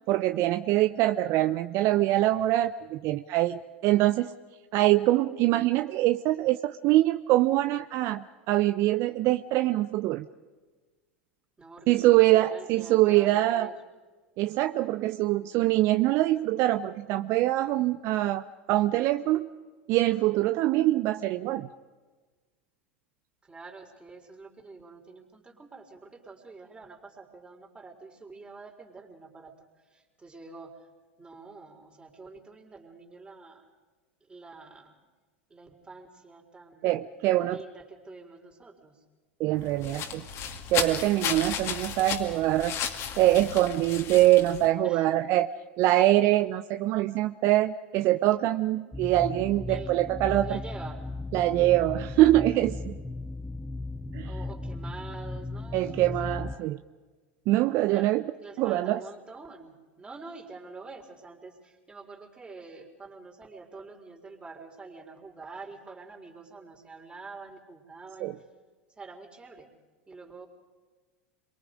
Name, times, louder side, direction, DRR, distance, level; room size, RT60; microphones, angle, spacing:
voice 1, 0.1-4.3 4.7-10.3 11.9-13.7 14.4-18.4 18.7-19.5 19.9-21.7 36.8-37.6 39.4-40.2 40.7-42.8 43.2-45.5 45.8-50.6 51.3-53.0 54.1-54.3 55.7-56.8 57.5-58.2 58.6-59.0 68.2-68.3, right 15 dB, 50° right, 10 dB, 0.6 m, -24 dB
voice 2, 11.6-13.7 23.4-30.9 31.2-33.7 34.2-35.0 35.5-36.9 37.5-39.0 44.8-45.1 49.7-49.9 50.4-51.2 54.2-56.8 57.9-58.2 58.4-68.5 69.0-69.7 70.1-70.5, right 3 dB, 15° right, 1 dB, 4.0 m, -46 dB
sound 1, 39.5-44.7, left 8 dB, 45° left, 2.4 m, -34 dB
sound 2, 48.9-56.6, left 2 dB, 5° left, 0.6 m, -36 dB
27.5 x 22.5 x 5.1 m, 1.3 s
hypercardioid pair, 85°, 6 cm